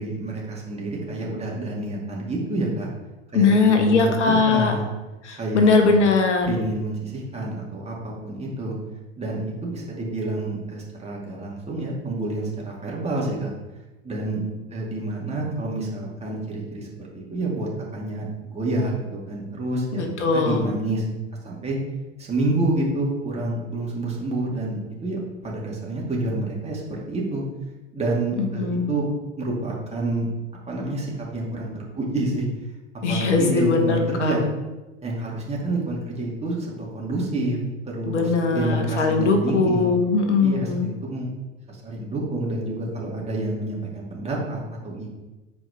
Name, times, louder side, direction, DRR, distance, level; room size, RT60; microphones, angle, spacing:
voice 1, 0.0-2.9 3.3-4.9 5.4-5.9 6.5-8.8 9.2-13.5 14.0-14.4 14.7-16.9 17.1-21.0 21.4-21.8 22.2-27.4 27.9-29.1 29.4-30.3 30.7-32.5 33.1-34.4 35.0-37.6 37.8-39.9 40.4-41.3 41.7-44.6 44.8-45.1, right 2 dB, 15° right, -4 dB, 2.6 m, -28 dB
voice 2, 3.3-4.8 5.2-6.5 20.0-20.7 28.6-28.9 33.0-34.4 38.1-40.9, left 4 dB, 75° left, 4 dB, 1.3 m, -20 dB
8.0 x 4.8 x 5.0 m, 1.1 s
figure-of-eight pair, 80°, 36 cm